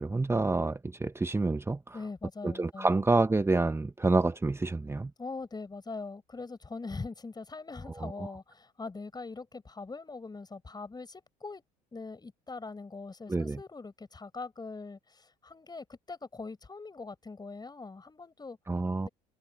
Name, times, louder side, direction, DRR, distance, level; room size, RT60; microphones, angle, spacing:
voice 1, 0.0-2.0 2.4-5.1 8.0-8.1 13.3-13.6 18.7-19.1, right 3 dB, 15° right, 1.1 m, -28 dB
voice 2, 1.9-3.1 5.2-11.6 11.9-18.6 19.0-19.1, left 3 dB, 20° left, 5.7 m, -42 dB
hypercardioid pair, 65°, 18 cm